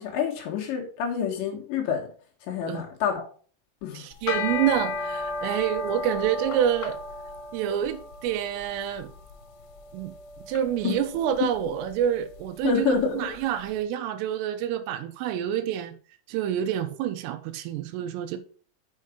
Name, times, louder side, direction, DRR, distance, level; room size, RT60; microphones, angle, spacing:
voice 1, 0.0-2.1 2.5-3.3 3.8-4.0 10.8-11.0 12.6-13.3, left 6 dB, 65° left, 3.5 m, -27 dB
voice 2, 4.0-7.0 7.5-9.1 9.9-10.1 10.5-16.0 16.3-18.4, right 10 dB, 85° right, 3.3 m, -27 dB
sound 1, 4.1-13.5, left 3 dB, 90° left, 3.7 m, -35 dB
7.4 x 6.4 x 5.1 m
omnidirectional pair, 6.0 m